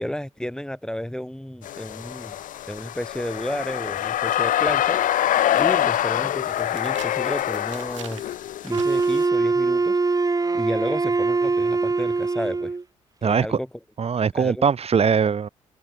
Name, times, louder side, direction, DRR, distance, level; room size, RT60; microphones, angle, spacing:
voice 1, 0.0-2.4 2.7-8.2 8.6-12.7 13.2-13.7 14.3-14.6, equal, 5° left, 4.8 m, -32 dB
sound 1, 1.6-9.2, left 12 dB, 55° left, 4.8 m, -25 dB
sound 2, 3.3-3.4 3.9-9.4, right 11 dB, 80° right, 6.9 m, -46 dB
Wind instrument woodwind instrument, 8.7-12.8, right 3 dB, 20° right, 2.8 m, -22 dB
voice 2, 13.2-13.6 14.0-15.5, right 6 dB, 40° right, 4.9 m, -21 dB
open air
figure-of-eight pair, 45°, 16 cm